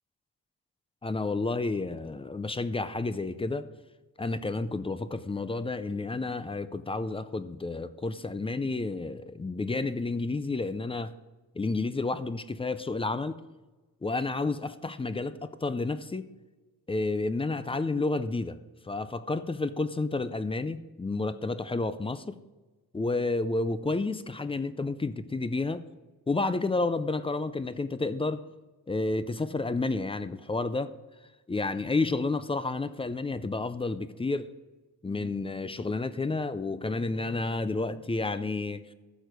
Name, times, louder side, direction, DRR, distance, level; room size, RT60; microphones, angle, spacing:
voice 1, 1.0-3.7 4.2-11.1 11.6-13.4 14.0-16.2 16.9-18.6 18.8-22.4 22.9-25.9 26.3-28.4 28.9-30.9 31.5-34.5 35.0-38.8, left 3 dB, 15° left, 0.3 m, -30 dB
15.0 x 6.4 x 5.1 m
wide cardioid pair, 155°, 40 cm